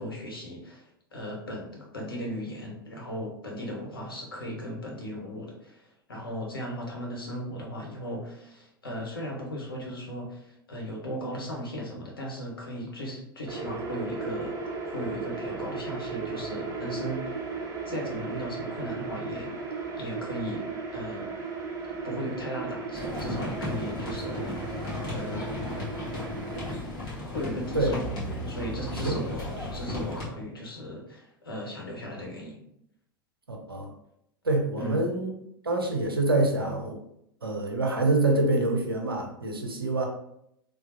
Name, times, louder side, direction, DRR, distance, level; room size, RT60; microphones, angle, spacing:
voice 1, 0.0-14.6 14.9-17.4 17.9-19.6 20.0-21.5 22.0-24.8 25.1-25.5 27.2-28.1 28.5-32.6 34.8-35.2, equal, 75° left, -1 dB, 0.8 m, -37 dB
sound 1, 13.5-26.8, right 4 dB, 25° right, 0.7 m, -36 dB
sound 2, 22.9-30.2, left 2 dB, 35° left, 1.5 m, -35 dB
voice 2, 33.5-33.9 34.4-35.3 35.6-37.0 37.4-40.1, right 2 dB, 80° right, 2 dB, 0.6 m, -26 dB
3.2 x 2.4 x 2.6 m, 0.76 s
figure-of-eight pair, 85°, 12 cm